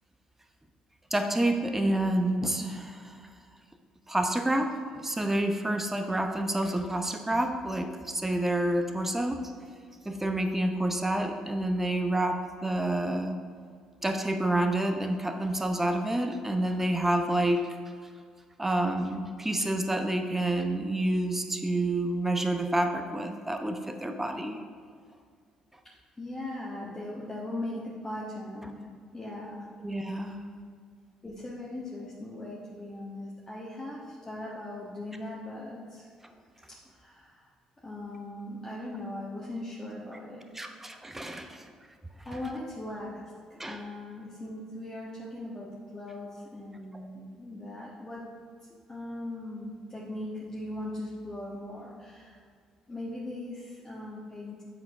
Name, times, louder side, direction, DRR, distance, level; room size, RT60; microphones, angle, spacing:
voice 1, 1.1-3.2 4.1-9.4 10.0-13.4 14.0-17.6 18.6-24.6 29.8-30.4 40.5-41.7 43.6-43.8, right 1 dB, 15° right, 5 dB, 0.9 m, -28 dB
voice 2, 26.2-28.8 29.1-29.7 30.2-30.3 31.2-36.1 36.7-37.5 37.8-40.5 41.4-41.6 42.2-48.2 48.9-52.4 52.9-54.6, left 1 dB, 20° left, -6 dB, 1.4 m, -39 dB
7.6 x 4.6 x 4.7 m, 2.1 s
hypercardioid pair, 55°, 2 cm